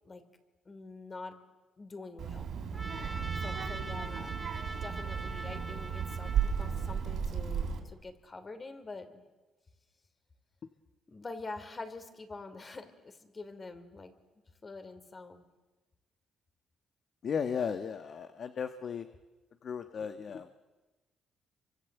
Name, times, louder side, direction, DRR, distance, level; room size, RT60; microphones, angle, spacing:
voice 1, 0.6-1.4 1.8-2.5 3.4-4.4 4.8-9.2 11.1-14.1 14.6-15.5, left 3 dB, 30° left, 8 dB, 3.2 m, -45 dB
Child speech kid speaking, 2.2-7.8, right 7 dB, 70° right, 4.5 m, -34 dB
Trumpet, 2.7-7.2, right 2 dB, 15° right, 2.5 m, -43 dB
voice 2, 17.2-19.1 19.6-20.5, left 6 dB, 55° left, 9 dB, 1.3 m, -35 dB
27.5 x 24.5 x 8.1 m, 1.2 s
cardioid pair, 90°, 0 cm